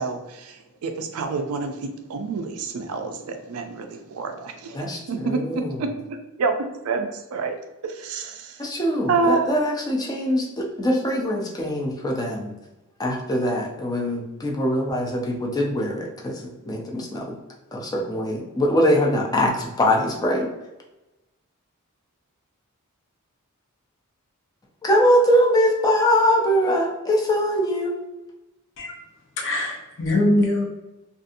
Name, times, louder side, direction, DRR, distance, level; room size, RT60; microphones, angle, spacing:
voice 1, 0.0-5.9 6.4-6.6 6.8-7.5 7.8-8.6 9.1-9.5, right 4 dB, 80° right, 6 dB, 0.4 m, -27 dB
voice 2, 4.7-5.8 8.6-12.5 13.0-17.2 17.7-20.5 24.8-27.9, equal, 20° left, -1 dB, 0.5 m, -22 dB
voice 3, 29.4-30.6, left 1 dB, 60° left, -1 dB, 0.7 m, -22 dB
2.6 x 2.4 x 2.5 m, 1.0 s
head